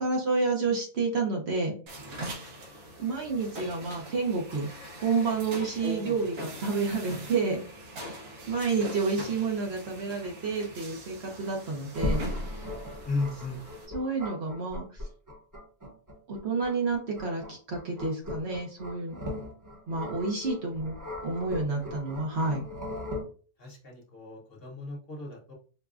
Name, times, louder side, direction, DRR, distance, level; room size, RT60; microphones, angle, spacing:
voice 1, 0.0-1.7 3.0-4.7 5.0-7.6 8.0-8.1 8.5-12.2 13.9-14.8 16.3-19.2 19.9-20.9 21.2-22.7, right 4 dB, 55° right, 0 dB, 1.0 m, -29 dB
sound 1, 1.9-13.9, right 1 dB, 80° right, 1.3 m, -43 dB
voice 2, 5.8-6.2 13.0-13.6 23.6-25.5, left 3 dB, 50° left, -2 dB, 1.0 m, -35 dB
sound 2, 11.9-23.2, left 1 dB, 15° right, 0.8 m, -37 dB
4.6 x 2.2 x 2.4 m, 0.39 s
omnidirectional pair, 1.4 m